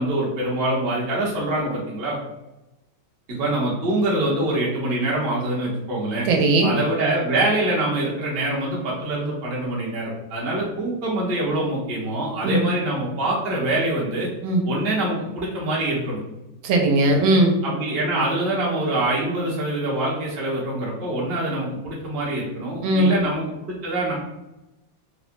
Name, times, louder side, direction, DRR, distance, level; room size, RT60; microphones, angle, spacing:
voice 1, 0.0-2.2 3.3-6.3 6.6-14.3 14.7-16.2 17.6-24.1, right 1 dB, 45° right, -5 dB, 0.8 m, -24 dB
voice 2, 6.3-6.7 12.4-12.6 14.4-14.6 16.6-17.6 22.8-23.2, right 2 dB, 90° right, 2 dB, 1.4 m, -18 dB
3.5 x 2.1 x 2.5 m, 0.96 s
omnidirectional pair, 2.1 m